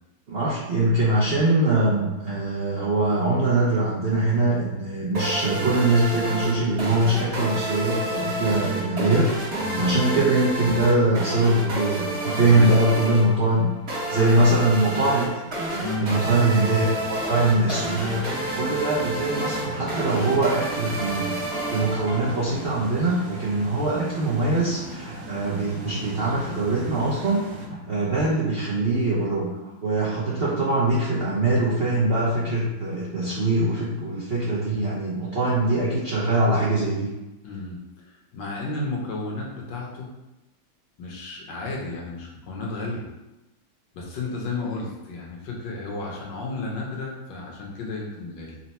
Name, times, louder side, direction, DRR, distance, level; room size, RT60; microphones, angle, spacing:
voice 1, 0.3-9.3 9.8-13.7 14.1-15.4 15.7-18.3 18.5-21.4 21.7-29.5 29.8-37.1, right 2 dB, 60° right, -8 dB, 0.6 m, -22 dB
sound 1, 5.1-22.6, right 1 dB, 40° right, 1.0 m, -30 dB
voice 2, 9.6-9.9 12.5-12.8 14.1-14.5 15.8-16.2 37.4-40.1 41.0-43.1 43.9-48.6, left 3 dB, 70° left, -2 dB, 1.4 m, -33 dB
sound 2, 16.8-27.7, right 1 dB, 10° right, 0.4 m, -40 dB
4.1 x 2.2 x 4.1 m, 0.99 s
omnidirectional pair, 2.1 m